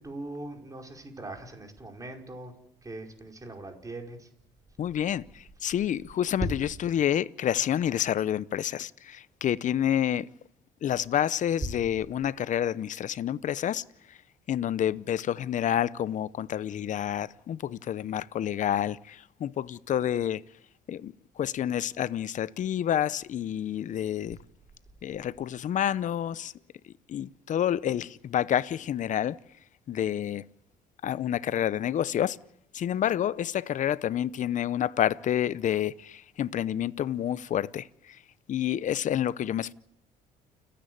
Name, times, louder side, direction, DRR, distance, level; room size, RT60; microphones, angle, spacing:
voice 1, 0.0-2.5 2.8-4.3, right 2 dB, 20° right, 4.9 m, -41 dB
voice 2, 4.8-10.3 10.8-14.2 14.5-20.4 20.9-24.4 25.0-26.5 27.1-29.4 29.9-30.4 31.0-32.4 32.7-38.2 38.5-39.7, left 10 dB, 50° left, 0.7 m, -29 dB
29.5 x 10.0 x 9.4 m
cardioid pair, 110°, 17 cm